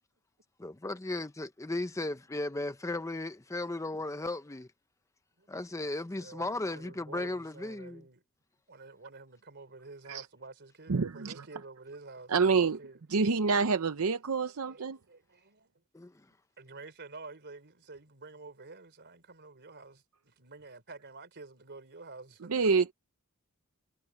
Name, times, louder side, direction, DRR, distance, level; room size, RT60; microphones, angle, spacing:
voice 1, 0.6-4.7 5.5-8.0 15.9-16.3, left 2 dB, 15° left, 0.6 m, -36 dB
voice 2, 5.4-5.8 6.2-8.2 8.7-13.0 14.5-15.8 16.6-22.5, right 3 dB, 50° right, 3.7 m, -50 dB
voice 3, 10.9-11.4 12.3-12.8 13.1-15.0 22.5-22.9, right 4 dB, 70° right, 0.7 m, -27 dB
head